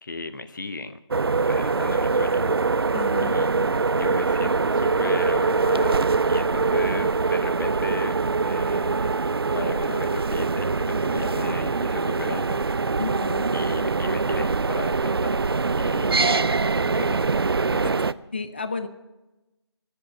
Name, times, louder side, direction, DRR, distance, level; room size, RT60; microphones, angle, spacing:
voice 1, 0.0-1.0 1.4-2.6 3.2-8.2 8.4-9.1 9.5-12.6 13.5-17.2 17.7-17.9, left 3 dB, 45° left, 11 dB, 1.0 m, -35 dB
sound 1, 1.1-18.1, right 4 dB, 60° right, 0.5 m, -23 dB
voice 2, 2.9-3.4 13.0-13.6 18.3-18.9, left 3 dB, 25° left, 11 dB, 0.5 m, -31 dB
20.0 x 7.9 x 9.1 m, 1.1 s
figure-of-eight pair, 170°, 14 cm